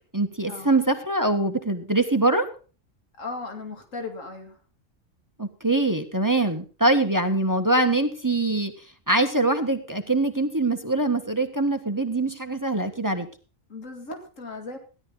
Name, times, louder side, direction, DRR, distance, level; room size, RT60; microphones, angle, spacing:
voice 1, 0.1-2.5 5.4-8.7 9.1-13.3, right 2 dB, 15° right, 7 dB, 1.3 m, -23 dB
voice 2, 3.2-4.6 13.7-14.8, left 3 dB, 85° left, 4 dB, 2.7 m, -36 dB
16.5 x 11.5 x 3.8 m, 0.37 s
omnidirectional pair, 1.3 m